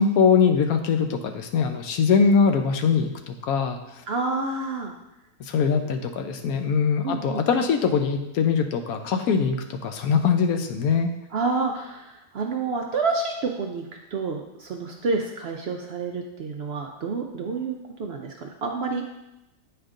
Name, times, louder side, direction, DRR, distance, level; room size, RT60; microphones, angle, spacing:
voice 1, 0.0-3.8 5.5-11.1, left 6 dB, 75° left, 6 dB, 1.1 m, -22 dB
voice 2, 4.1-4.9 7.0-7.5 11.3-13.8 14.1-19.0, right 4 dB, 70° right, 2 dB, 0.6 m, -28 dB
9.4 x 4.5 x 2.5 m, 0.92 s
omnidirectional pair, 1.6 m